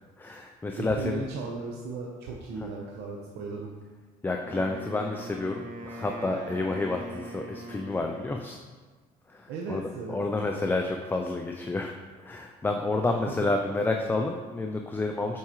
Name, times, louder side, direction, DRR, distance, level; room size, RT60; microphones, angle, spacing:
voice 1, 0.2-1.2 2.6-2.7 4.2-8.6 9.3-11.9 12.2-15.4, left 2 dB, 10° left, 3 dB, 0.3 m, -30 dB
voice 2, 0.7-3.7 9.5-10.7, right 3 dB, 85° right, -1 dB, 0.7 m, -36 dB
Wind instrument woodwind instrument, 4.4-8.6, right 2 dB, 50° right, 0.9 m, -42 dB
7.2 x 4.8 x 2.9 m, 1.4 s
cardioid pair, 110°, 17 cm